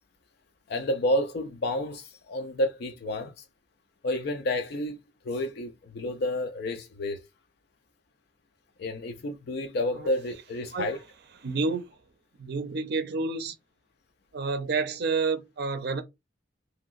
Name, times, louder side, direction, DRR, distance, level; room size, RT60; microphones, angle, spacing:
voice 1, 0.7-3.4 4.0-5.0 5.2-7.2 8.8-11.0, left 1 dB, 60° left, 0.4 m, -30 dB
voice 2, 11.4-11.8 12.4-13.5 14.3-16.0, right 4 dB, 60° right, 0.5 m, -29 dB
2.8 x 2.8 x 2.5 m
head